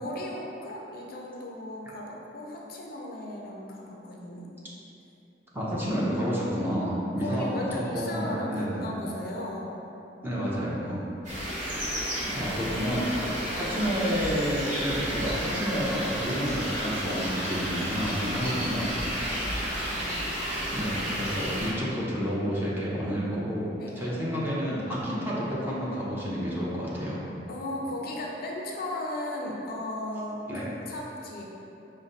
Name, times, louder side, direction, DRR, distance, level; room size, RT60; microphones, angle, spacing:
voice 1, 0.0-4.5 7.2-9.7 12.1-12.5 19.3-20.1 23.8-23.9 27.5-31.5, left 1 dB, 55° left, -2 dB, 0.5 m, -36 dB
voice 2, 5.5-7.7 7.9-8.9 10.2-11.0 12.3-18.9 20.7-23.6 24.0-27.2 30.5-30.7, equal, 10° right, -7 dB, 0.7 m, -30 dB
sound 1, 11.2-21.7, equal, 45° right, 1.3 m, -32 dB
5.1 x 2.2 x 3.9 m, 2.9 s
head